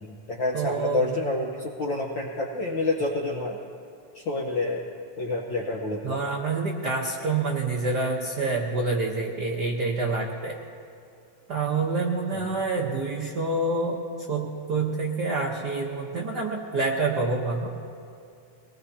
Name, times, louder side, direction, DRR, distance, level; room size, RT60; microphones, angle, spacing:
voice 1, 0.0-3.6 4.1-4.8 5.2-6.2 12.3-12.4, left 2 dB, 70° left, -2 dB, 1.1 m, -28 dB
voice 2, 0.5-1.1 6.0-10.6 11.5-14.0 14.3-17.7, right 3 dB, 85° right, -1 dB, 0.9 m, -27 dB
23.5 x 19.5 x 2.8 m, 2.5 s
omnidirectional pair, 3.6 m